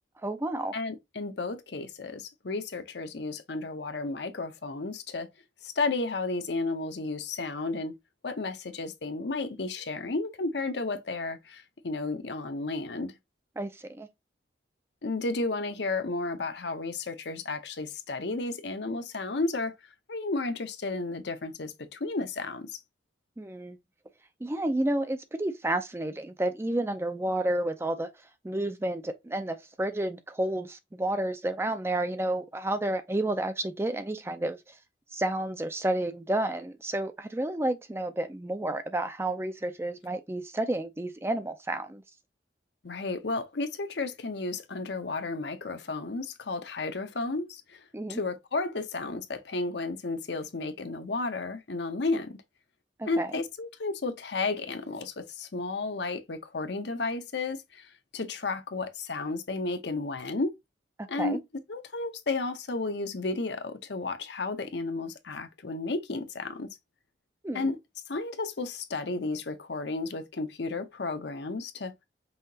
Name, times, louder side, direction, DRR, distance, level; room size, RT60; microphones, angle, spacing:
voice 1, 0.2-0.7 13.6-14.1 23.4-23.8 24.4-28.1 28.4-34.7 35.1-42.0 47.9-48.2 53.0-53.3 61.0-61.4 67.4-67.7, right 1 dB, 15° right, 0.4 m, -31 dB
voice 2, 0.7-5.3 5.6-7.9 8.2-13.1 15.0-19.7 20.1-22.8 42.8-47.8 48.1-52.4 53.1-60.6 61.1-61.4 61.7-66.7 67.5-67.8 68.1-71.9, left 3 dB, 70° left, 0.7 m, -33 dB
5.6 x 2.8 x 2.7 m
head